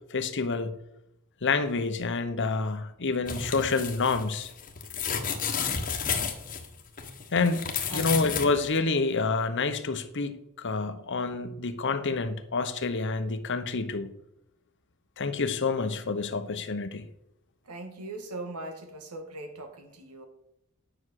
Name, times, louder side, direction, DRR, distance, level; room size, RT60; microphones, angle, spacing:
voice 1, 0.1-0.7 1.4-4.5 7.3-14.1 15.2-17.0, left 4 dB, 55° left, 0.9 m, -28 dB
sound 1, 3.3-8.5 8.8-8.9, left 6 dB, 40° left, 1.3 m, -32 dB
voice 2, 17.6-20.3, right 2 dB, 85° right, 2.0 m, -40 dB
9.7 x 6.2 x 6.4 m
head